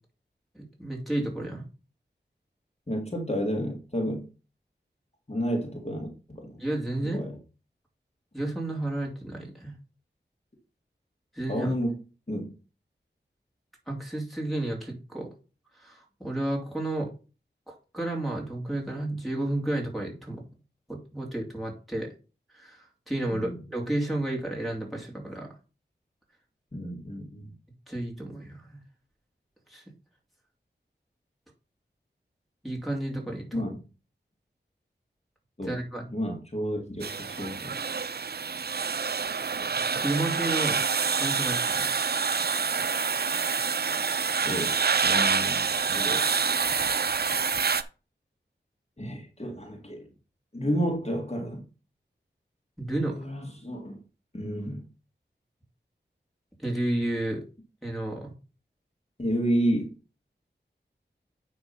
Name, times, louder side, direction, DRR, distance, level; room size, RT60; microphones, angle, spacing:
voice 1, 0.5-1.6 6.6-7.2 8.3-9.7 11.3-11.7 13.9-15.3 15.8-17.1 17.7-20.5 20.9-22.1 22.5-25.5 27.9-28.8 29.7-29.8 32.6-33.6 35.7-36.0 39.9-40.8 41.2-41.9 52.8-53.2 56.6-57.4 57.8-58.3, right 1 dB, ahead, 0 dB, 2.6 m, -31 dB
voice 2, 2.9-4.3 5.3-6.6 7.0-7.4 11.5-12.0 12.3-12.5 23.3-23.6 26.7-27.5 33.5-33.8 35.6-35.7 36.1-37.8 44.4-44.8 45.0-46.2 49.0-50.1 50.5-51.7 53.1-54.0 54.3-54.8 59.2-59.9, equal, 35° left, 0 dB, 2.0 m, -31 dB
sound 1, 37.0-47.8, right 5 dB, 60° right, 0.5 m, -27 dB
9.5 x 3.6 x 5.5 m, 0.34 s
wide cardioid pair, 65°, 19 cm